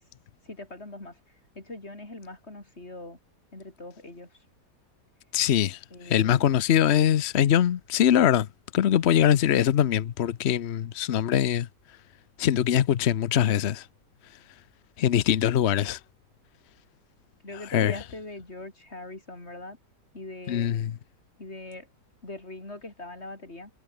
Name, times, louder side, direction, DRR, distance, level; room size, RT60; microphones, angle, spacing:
voice 1, 0.4-3.2 3.5-4.5 5.9-6.5 17.4-19.8 20.1-20.8 21.4-21.9 22.2-23.7, left 2 dB, 35° left, 5.3 m, -42 dB
voice 2, 5.3-8.5 8.7-11.7 12.4-13.9 15.0-16.0 17.7-17.9 20.5-20.9, left 10 dB, 60° left, 0.7 m, -22 dB
omnidirectional pair, 1.9 m